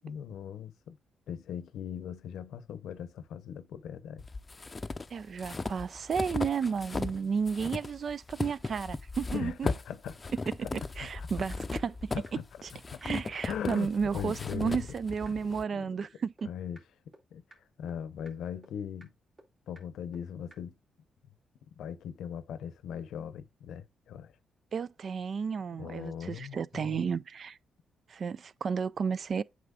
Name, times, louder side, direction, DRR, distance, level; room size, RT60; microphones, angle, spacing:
voice 1, 0.0-1.0 1.3-4.2 9.3-10.3 10.6-10.7 11.0-11.5 12.1-12.4 12.9-13.0 13.5-14.9 15.7-15.9 16.4-16.8 17.3-17.4 17.8-19.1 19.7-20.7 21.8-24.3 25.8-27.1, left 8 dB, 80° left, 0.7 m, -39 dB
sound 1, 4.2-7.2 7.5-15.6, left 3 dB, 30° left, 0.5 m, -37 dB
voice 2, 5.1-9.7 10.7-12.1 12.6-12.7 13.0-16.5 24.7-27.6 28.1-29.4, right 6 dB, 55° right, 0.3 m, -32 dB
sound 2, 10.8-10.9 11.1-11.2 11.5-11.6 11.9-12.0 12.3-12.4 12.6-12.7 13.0-13.1 13.4-13.5 13.8-13.9 14.1-14.2 14.5-14.6 14.9-15.0 15.3-15.4 15.6-15.7 16.0-16.1 16.4-16.5 16.8-16.9 17.1-17.2 17.5-17.6 17.9-18.0 18.3-18.4 18.6-18.7 19.0-19.1 19.4-19.5 19.8-19.9 20.1-20.2 20.5-20.6, right 1 dB, 35° right, 2.2 m, -53 dB
8.2 x 5.0 x 2.4 m
cardioid pair, 70°, 0 cm